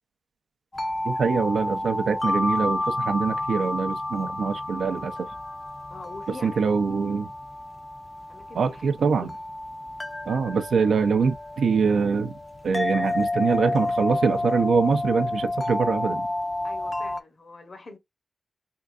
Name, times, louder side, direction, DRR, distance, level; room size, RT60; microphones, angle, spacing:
sound 1, 0.7-17.2, left 2 dB, 30° left, 0.4 m, -30 dB
voice 1, 1.0-5.3 6.4-7.3 8.5-9.3 10.3-12.4 12.6-16.3, right 5 dB, 90° right, 0.4 m, -24 dB
voice 2, 5.9-6.6 8.3-8.9 9.2-9.3 16.6-18.0, left 3 dB, 60° left, 0.8 m, -43 dB
3.7 x 2.4 x 2.3 m
cardioid pair, 55°, 0 cm